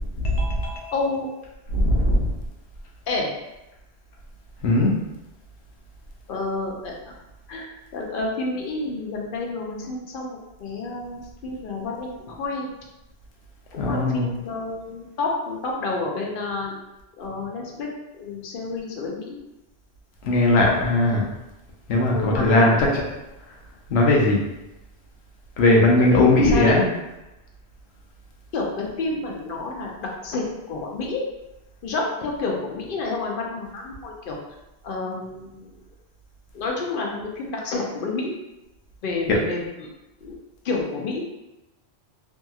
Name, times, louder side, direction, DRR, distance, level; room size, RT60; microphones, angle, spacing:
voice 1, 0.2-1.0 1.7-2.3 4.6-4.9 13.8-14.3 20.2-21.3 21.9-23.0 23.9-24.4 25.6-26.9 39.3-39.4, left 2 dB, 85° left, -2 dB, 0.9 m, -19 dB
voice 2, 0.9-1.3 3.1-3.3 6.3-7.1 7.5-12.7 13.7-16.8 17.2-19.4 22.1-22.8 25.7-27.0 28.5-31.3 31.8-34.4 34.8-35.7 36.5-38.3 39.0-39.9 40.2-40.4 40.6-41.2, left 3 dB, 60° left, -1 dB, 0.7 m, -29 dB
2.7 x 2.7 x 2.3 m, 0.96 s
omnidirectional pair, 1.1 m